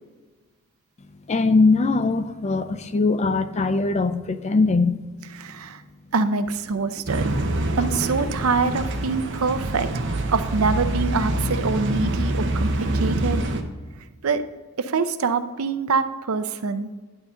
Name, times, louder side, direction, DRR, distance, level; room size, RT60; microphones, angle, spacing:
voice 1, 1.3-5.0, left 3 dB, 30° left, 11 dB, 0.4 m, -21 dB
voice 2, 5.4-5.8 6.1-7.3 7.8-10.0 10.3-13.4 14.2-14.4 14.8-16.9, right 4 dB, 85° right, 10 dB, 0.6 m, -25 dB
sound 1, 7.1-13.6, right 1 dB, 60° right, 0.9 m, -25 dB
11.5 x 4.0 x 5.6 m, 1.3 s
head